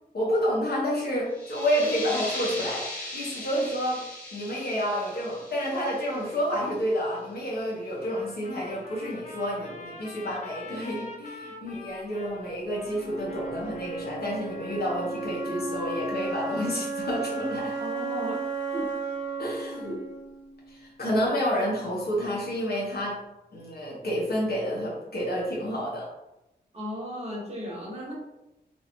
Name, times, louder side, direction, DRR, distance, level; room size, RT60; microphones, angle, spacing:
voice 1, 0.1-4.0 4.3-17.7 19.4-20.0 20.7-23.2 23.5-26.1, equal, 65° left, -5 dB, 1.1 m, -29 dB
sound 1, 1.3-6.7, left 1 dB, 10° left, 1.0 m, -38 dB
Trumpet, 8.0-15.0, left 1 dB, 45° left, 0.5 m, -45 dB
Wind instrument woodwind instrument, 12.9-20.9, right 3 dB, 90° left, 0.6 m, -34 dB
voice 2, 17.8-18.4 18.7-18.9 19.8-20.0 26.7-28.1, equal, 35° right, -5 dB, 1.0 m, -35 dB
2.9 x 2.6 x 2.9 m, 0.92 s
wide cardioid pair, 135°, 18 cm